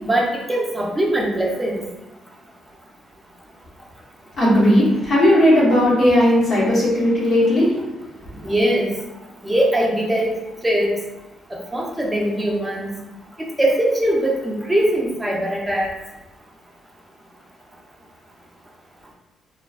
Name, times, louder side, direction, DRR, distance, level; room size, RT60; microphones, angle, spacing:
voice 1, 0.1-1.8 8.4-8.9 9.4-10.3 10.6-10.9 11.5-12.9 13.6-15.9, right 1 dB, 10° right, -2 dB, 0.5 m, -21 dB
voice 2, 4.4-7.8 8.3-8.5, left 1 dB, 65° left, -8 dB, 0.9 m, -16 dB
2.4 x 2.2 x 2.3 m, 1.0 s
cardioid pair, 90°, 0 cm